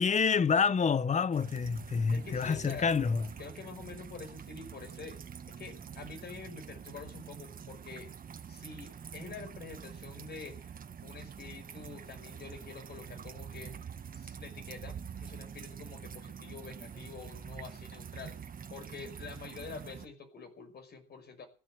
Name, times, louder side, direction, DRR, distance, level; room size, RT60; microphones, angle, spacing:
voice 1, 0.0-3.3, left 5 dB, 35° left, 1.0 m, -28 dB
sound 1, 1.3-20.1, right 7 dB, 45° right, 1.4 m, -46 dB
voice 2, 2.1-2.9 3.4-5.2 5.6-8.1 8.5-10.7 11.0-13.9 14.1-21.5, left 5 dB, 55° left, 5.7 m, -47 dB
15.5 x 12.0 x 7.8 m
cardioid pair, 90°, 20 cm